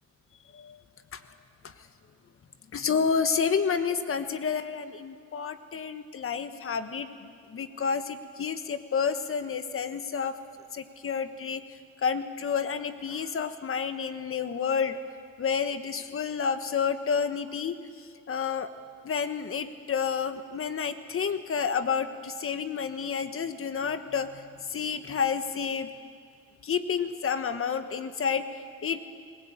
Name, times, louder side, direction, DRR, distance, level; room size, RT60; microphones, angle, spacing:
voice 1, 2.7-7.1 7.5-10.3 10.7-11.6 12.0-15.0 15.4-17.8 18.3-18.7 19.0-24.4 24.7-25.9 26.6-29.0, left 6 dB, 45° left, 10 dB, 1.4 m, -30 dB
20.5 x 20.0 x 8.9 m, 2.2 s
cardioid pair, 90°, 30 cm